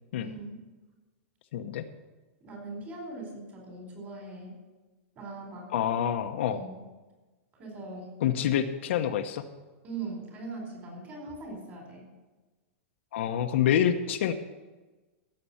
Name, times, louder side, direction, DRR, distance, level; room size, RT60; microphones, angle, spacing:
voice 1, 0.2-0.6 2.4-4.6 5.2-5.7 6.5-6.8 7.6-8.1 9.8-12.0, right 3 dB, 25° right, 1 dB, 4.5 m, -40 dB
voice 2, 1.5-1.8 5.7-6.6 8.2-9.4 13.1-14.3, left 9 dB, 65° left, 6 dB, 1.0 m, -27 dB
16.0 x 7.7 x 5.7 m, 1.2 s
supercardioid pair, 160°, 7 cm